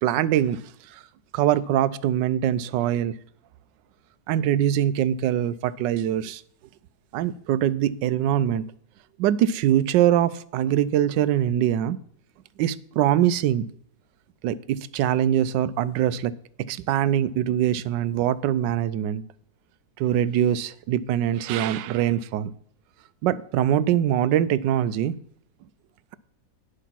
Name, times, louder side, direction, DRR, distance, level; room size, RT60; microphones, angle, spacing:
voice 1, 0.0-0.6 0.9-1.0 1.3-3.1 4.3-6.4 7.1-8.6 9.2-12.0 12.6-13.7 14.4-16.3 16.6-19.2 20.0-22.5 23.2-25.2, right 11 dB, 85° right, 16 dB, 1.3 m, -23 dB
10.0 x 6.6 x 5.8 m, 0.66 s
omnidirectional pair, 1.9 m